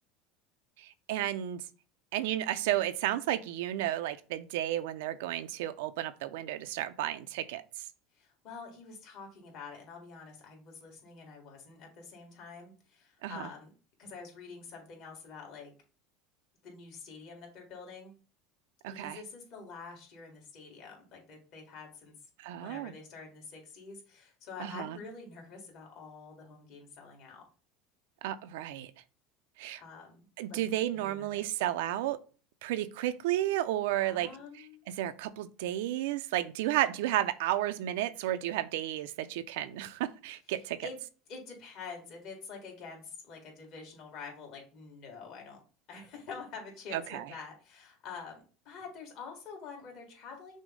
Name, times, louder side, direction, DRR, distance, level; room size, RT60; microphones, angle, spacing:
voice 1, 0.8-1.6 2.1-7.9 13.2-13.5 18.8-19.2 22.4-22.9 24.6-25.0 28.2-28.9 29.6-29.8 30.4-32.2 32.6-40.9 46.9-47.3, right 13 dB, 80° right, 0.4 m, -33 dB
voice 2, 8.1-13.7 14.0-15.7 16.6-18.1 18.9-22.1 22.5-27.4 29.8-30.6 30.9-31.5 34.0-34.8 40.8-41.0 41.3-45.6 45.9-48.3 48.7-50.6, left 5 dB, 50° left, 1.9 m, -47 dB
6.1 x 2.1 x 3.7 m
supercardioid pair, 135°, 0 cm